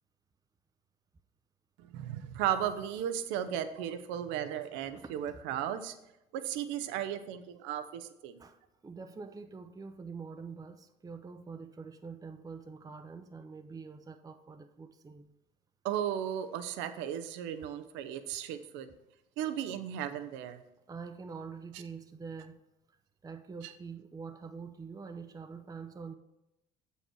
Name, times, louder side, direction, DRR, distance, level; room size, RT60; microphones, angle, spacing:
voice 1, 1.8-6.0 6.3-8.4 15.8-18.9 19.4-20.6 23.6-23.7, right 10 dB, 75° right, 0.6 m, -35 dB
voice 2, 8.4-15.3 20.9-22.6 22.9-23.0 23.2-26.2, right 5 dB, 20° right, 0.6 m, -45 dB
7.3 x 5.5 x 4.4 m
hypercardioid pair, 65°, 19 cm